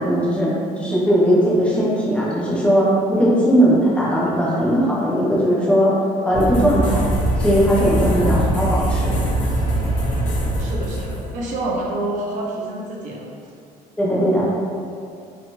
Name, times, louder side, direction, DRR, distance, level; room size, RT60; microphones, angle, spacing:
voice 1, 0.0-5.9 6.2-7.0 7.4-9.2 14.0-14.4, equal, 5° left, -8 dB, 0.6 m, -18 dB
sound 1, 6.3-11.3, right 1 dB, 55° left, 0.6 m, -22 dB
voice 2, 10.6-13.3, right 2 dB, 55° right, -3 dB, 0.5 m, -27 dB
2.9 x 2.2 x 2.8 m, 2.4 s
cardioid pair, 150°, 15 cm